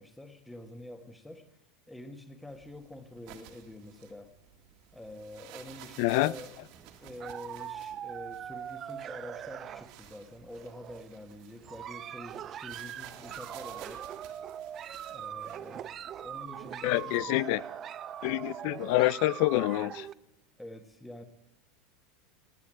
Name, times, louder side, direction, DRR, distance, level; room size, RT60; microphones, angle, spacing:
voice 1, 0.0-1.5 1.9-4.3 4.9-6.5 6.8-14.1 15.1-17.4 20.6-21.2, left 1 dB, 10° left, 1.7 m, -47 dB
sound 1, 2.5-17.0, right 10 dB, 60° right, 1.8 m, -54 dB
voice 2, 6.0-6.3 16.8-17.6 18.2-20.1, left 19 dB, 60° left, 0.4 m, -27 dB
sound 2, 6.7-10.3 10.5-11.1 11.6-20.1, right 10 dB, 40° right, 0.5 m, -41 dB
17.5 x 10.5 x 5.0 m
hypercardioid pair, 80°, 0 cm